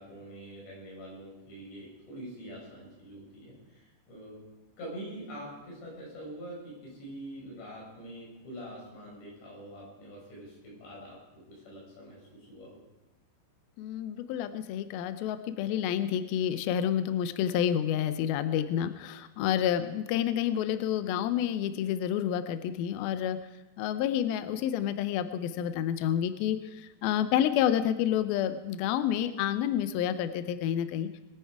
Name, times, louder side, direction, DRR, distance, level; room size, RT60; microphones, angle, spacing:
voice 1, 0.0-4.4 4.8-12.8, right 1 dB, 70° left, -3 dB, 7.6 m, -45 dB
voice 2, 13.8-23.4 23.8-26.6 27.0-31.1, left 10 dB, 85° left, 11 dB, 2.1 m, -29 dB
22.5 x 10.0 x 4.7 m, 1.0 s
omnidirectional pair, 5.3 m